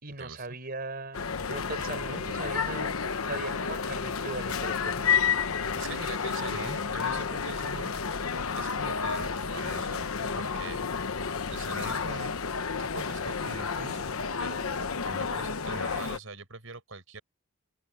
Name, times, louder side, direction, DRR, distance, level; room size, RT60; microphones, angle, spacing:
voice 1, 0.0-3.0 3.2-5.0, right 3 dB, 45° right, 4.8 m, -39 dB
sound 1, 1.1-16.2, left 6 dB, 85° left, 1.0 m, -31 dB
voice 2, 5.8-7.9 8.6-10.0 10.3-10.9 11.5-12.3 12.8-14.1 14.4-17.2, right 3 dB, 70° right, 5.2 m, -42 dB
open air
head